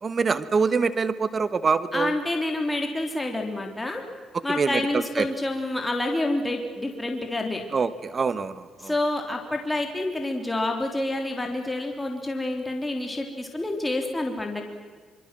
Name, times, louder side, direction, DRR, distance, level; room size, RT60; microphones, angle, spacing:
voice 1, 0.0-2.1 4.3-5.3 7.7-8.9, right 5 dB, 40° right, 14 dB, 1.2 m, -25 dB
voice 2, 1.9-4.0 4.4-7.6 8.8-14.6, left 2 dB, 15° left, 2 dB, 3.5 m, -28 dB
25.0 x 25.0 x 7.7 m, 1.5 s
cardioid pair, 90°, 0 cm